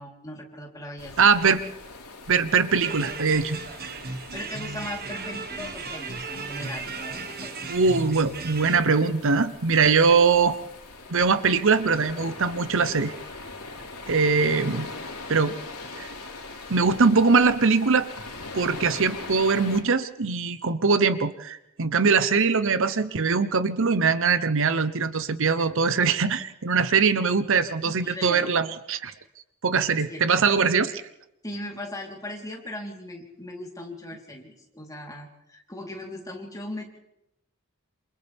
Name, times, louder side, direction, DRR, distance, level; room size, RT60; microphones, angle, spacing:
voice 1, 0.0-1.3 4.1-7.5 27.8-28.5 30.0-30.5 31.4-37.0, left 1 dB, 15° left, -1 dB, 3.8 m, -38 dB
sound 1, 1.0-19.8, left 3 dB, 80° left, 3.9 m, -41 dB
voice 2, 1.2-1.6 2.3-3.6 7.7-10.6 11.1-13.1 14.1-14.9 15.3-15.6 16.0-16.1 16.7-18.1 18.5-29.1 29.6-31.0, right 5 dB, 60° right, 12 dB, 0.9 m, -22 dB
sound 2, 2.8-8.8, right 4 dB, 45° right, 1.6 m, -36 dB
28.0 x 27.5 x 3.6 m, 0.86 s
head